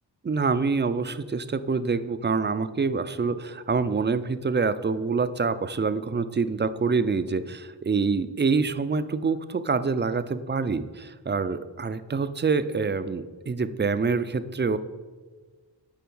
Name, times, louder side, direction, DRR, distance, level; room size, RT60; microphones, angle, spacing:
voice 1, 0.3-14.8, right 4 dB, 25° right, 12 dB, 0.4 m, -26 dB
10.5 x 4.2 x 5.4 m, 1.4 s
wide cardioid pair, 75°, 45 cm